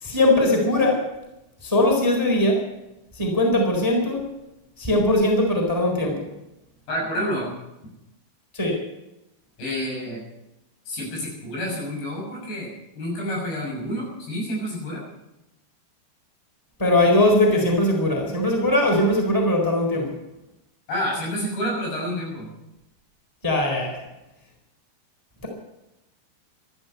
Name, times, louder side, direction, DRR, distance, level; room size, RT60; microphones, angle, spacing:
voice 1, 0.0-1.0 1.6-2.7 3.2-4.2 4.8-6.3 8.5-8.8 16.8-20.1 23.4-24.0, left 1 dB, 5° left, 1 dB, 3.7 m, -20 dB
voice 2, 6.9-7.5 9.6-10.2 10.9-15.0 20.9-22.5, equal, 75° left, -1 dB, 8.7 m, -29 dB
13.5 x 13.0 x 8.2 m, 0.92 s
omnidirectional pair, 5.0 m